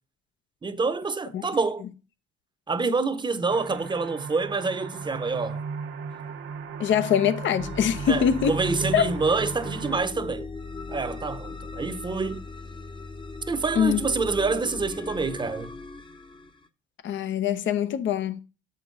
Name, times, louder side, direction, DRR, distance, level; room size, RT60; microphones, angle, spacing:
voice 1, 0.6-1.9 2.7-5.6 8.1-10.5 10.9-12.4 13.5-15.7, right 4 dB, 25° right, 0.8 m, -27 dB
sound 1, 3.5-10.0, right 5 dB, 75° right, 0.9 m, -35 dB
voice 2, 6.8-8.6 8.9-9.1 13.8-14.0 17.0-18.4, left 8 dB, 75° left, 0.8 m, -23 dB
sound 2, 7.6-16.7, left 3 dB, 25° left, 0.8 m, -38 dB
7.2 x 5.3 x 3.8 m
cardioid pair, 90°, 20 cm